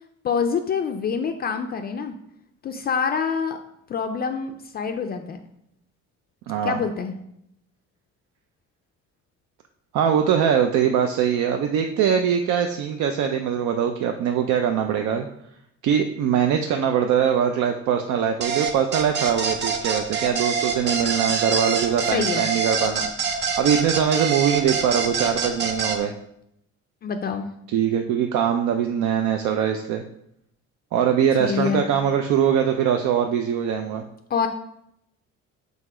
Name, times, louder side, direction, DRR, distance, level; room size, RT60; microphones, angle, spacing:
voice 1, 0.2-2.1 2.6-3.6 3.9-5.4 6.6-7.1 22.1-22.5 27.0-27.5 31.4-31.8 34.3-34.5, left 6 dB, 35° left, 6 dB, 0.4 m, -26 dB
voice 2, 6.5-6.8 9.9-15.3 15.8-26.1 27.7-30.0 30.9-34.0, right 8 dB, 75° right, 5 dB, 0.6 m, -22 dB
sound 1, 18.4-26.0, right 6 dB, 35° right, 0.7 m, -25 dB
6.7 x 4.1 x 4.9 m, 0.77 s
cardioid pair, 180°, 30 cm